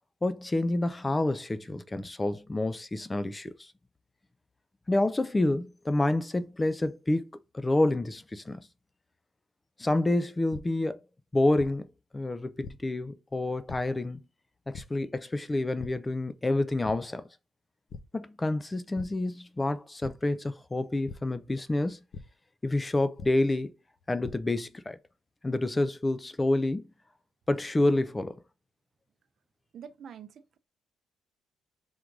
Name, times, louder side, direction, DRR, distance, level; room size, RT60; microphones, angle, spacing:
voice 1, 0.2-3.7 4.9-7.3 7.5-8.6 9.8-11.0 11.3-11.9 12.1-14.2 14.7-17.2 18.1-22.0 22.6-23.7 24.1-25.0 25.4-26.9 27.5-28.4, left 2 dB, 15° left, 0.4 m, -28 dB
sound 1, 10.5-10.6 11.6-11.7 12.6-12.7 13.7-13.8 14.7-14.8 15.8-15.9 16.3-16.5 16.8-16.9 17.9-18.0 18.9-19.1 20.0-20.1 21.1-21.2 22.1-22.2 23.2-23.3 24.0-24.3, left 5 dB, 50° left, 0.6 m, -41 dB
voice 2, 29.7-30.6, right 8 dB, 55° right, 0.5 m, -46 dB
3.6 x 2.5 x 4.6 m
cardioid pair, 110°, 0 cm